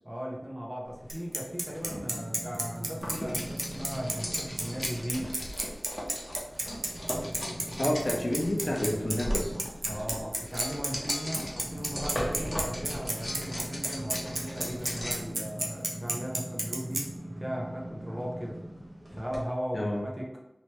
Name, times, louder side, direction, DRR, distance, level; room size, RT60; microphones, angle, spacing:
voice 1, 0.0-5.4 9.9-17.1 17.4-18.6 19.1-20.4, equal, 20° right, -2 dB, 1.0 m, -37 dB
sound 1, 0.8-5.5 5.9-19.4 19.9-20.0, right 1 dB, 45° right, 1.2 m, -42 dB
Bicycle, 1.1-17.0, right 2 dB, 85° right, 0.6 m, -31 dB
sound 2, 3.0-15.3, equal, 30° left, 1.0 m, -38 dB
voice 2, 7.8-9.5 19.7-20.0, left 1 dB, 60° left, -2 dB, 0.9 m, -29 dB
3.2 x 3.1 x 3.0 m, 0.88 s
wide cardioid pair, 45°, 0 cm